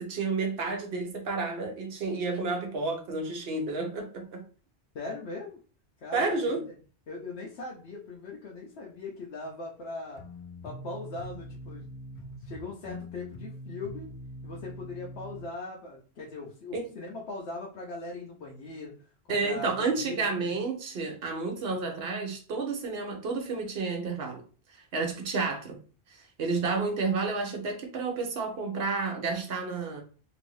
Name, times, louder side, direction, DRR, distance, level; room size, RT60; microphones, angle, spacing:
voice 1, 0.0-4.4 6.1-6.6 16.7-16.9 19.3-24.4 24.7-25.8 26.1-30.0, right 4 dB, 70° right, 3 dB, 1.0 m, -31 dB
voice 2, 4.9-5.6 6.0-6.7 7.1-10.2 10.6-11.8 12.4-14.1 14.4-20.5 21.6-21.9, left 3 dB, 80° left, -2 dB, 0.9 m, -40 dB
sound 1, 10.2-15.5, equal, 55° left, 0.7 m, -43 dB
3.0 x 2.6 x 3.1 m, 0.39 s
omnidirectional pair, 1.1 m